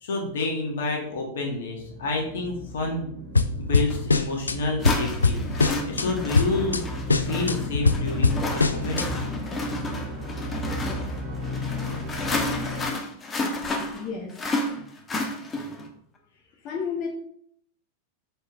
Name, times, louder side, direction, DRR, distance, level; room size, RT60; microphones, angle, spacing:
voice 1, 0.0-3.1 3.6-6.8 7.2-9.1, left 3 dB, 60° left, 1 dB, 1.7 m, -29 dB
sound 1, 1.8-12.9, left 1 dB, 50° right, 2.6 m, -34 dB
sound 2, 3.3-4.6 4.8-6.1 6.3-6.8 7.1-9.1, left 3 dB, 75° left, 0.4 m, -22 dB
sound 3, 3.9-4.0 4.8-15.9, left 2 dB, 20° left, 1.2 m, -31 dB
voice 2, 13.9-14.4 15.2-15.3 16.6-17.1, left 6 dB, 35° left, -1 dB, 1.3 m, -32 dB
6.6 x 4.8 x 3.5 m, 0.65 s
figure-of-eight pair, 90°, 0 cm